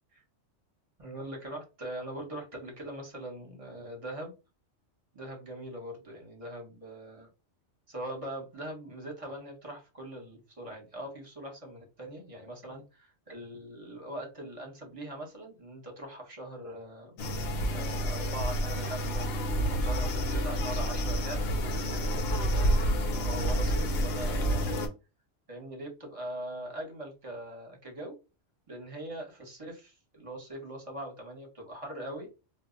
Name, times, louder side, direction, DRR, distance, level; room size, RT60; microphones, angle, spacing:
voice 1, 1.0-4.3 5.1-7.3 7.9-17.2 17.7-19.3 19.6-24.8 25.5-28.2 28.7-32.3, right 1 dB, 30° right, 1 dB, 0.9 m, -41 dB
sound 1, 17.2-24.9, equal, 65° left, 0.8 m, -29 dB
2.2 x 2.0 x 3.7 m, 0.29 s
omnidirectional pair, 1.2 m